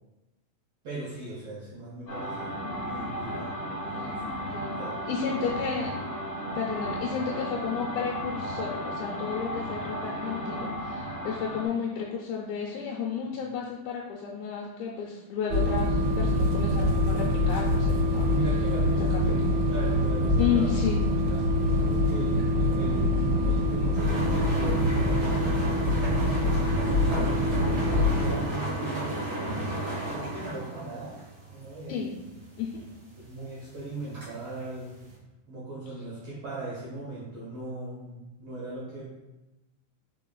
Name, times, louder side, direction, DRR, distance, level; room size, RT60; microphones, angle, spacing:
voice 1, 0.8-3.5 3.7-4.5 4.8-5.5 18.2-20.8 21.3-21.4 21.8-26.4 26.7-29.6 30.1-31.2 31.5-32.0 33.2-35.0 35.5-39.1, right 2 dB, 75° right, -8 dB, 1.4 m, -39 dB
sound 1, 2.1-11.7, equal, 50° left, 1.6 m, -34 dB
voice 2, 5.1-5.9 6.5-18.3 19.1-19.4 20.4-21.0 31.9-32.1 32.6-32.8, left 7 dB, 85° left, -4 dB, 2.4 m, -32 dB
sound 2, 15.5-28.3, left 1 dB, 90° right, 2.6 m, -25 dB
sound 3, 23.9-35.1, right 1 dB, 50° right, 1.6 m, -33 dB
5.0 x 4.4 x 2.3 m, 1.0 s
omnidirectional pair, 4.2 m